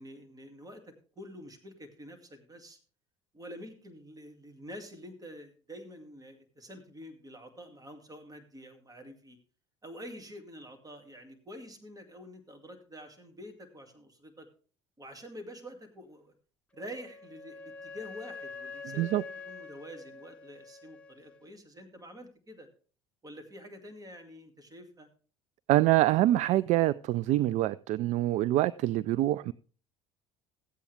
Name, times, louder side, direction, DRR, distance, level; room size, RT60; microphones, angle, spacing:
voice 1, 0.0-2.8 3.3-9.4 9.8-14.5 15.0-16.3 16.7-22.7 23.2-25.1, equal, 25° right, 6 dB, 2.3 m, -47 dB
Wind instrument woodwind instrument, 16.7-21.4, left 4 dB, 5° left, 1.3 m, -45 dB
voice 2, 25.7-29.5, right 15 dB, 50° right, 18 dB, 0.4 m, -25 dB
14.5 x 8.4 x 3.4 m, 0.40 s
hypercardioid pair, 65°, 15 cm